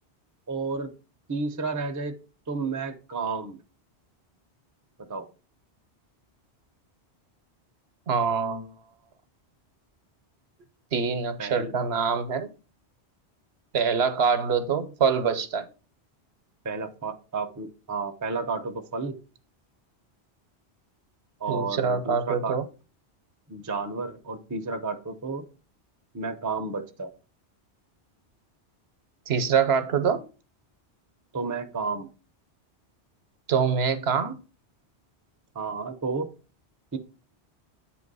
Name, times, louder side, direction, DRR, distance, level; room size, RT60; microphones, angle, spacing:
voice 1, 0.5-0.9 1.3-2.2 2.5-3.6 5.1-5.3 11.4-11.7 16.6-19.2 21.4-22.6 23.5-25.4 26.1-27.1 31.3-32.1 35.5-36.3 36.9-37.0, right 4 dB, 20° right, 0.5 m, -31 dB
voice 2, 8.1-8.7 10.9-12.5 13.7-15.7 21.5-22.6 29.3-30.2 33.5-34.4, right 6 dB, 70° right, 1.0 m, -24 dB
8.5 x 2.9 x 5.3 m
omnidirectional pair, 1.1 m